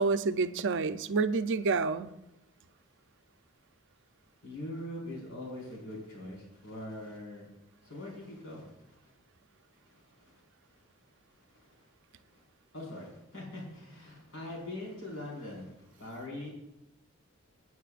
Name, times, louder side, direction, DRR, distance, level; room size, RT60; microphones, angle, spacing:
voice 1, 0.0-2.1, right 4 dB, 60° right, 10 dB, 0.6 m, -28 dB
voice 2, 4.4-7.5 7.8-8.8 9.9-10.2 11.5-11.7 12.3-12.4 12.7-16.5, left 1 dB, 65° left, -3 dB, 4.9 m, -42 dB
24.5 x 9.5 x 2.5 m, 0.89 s
head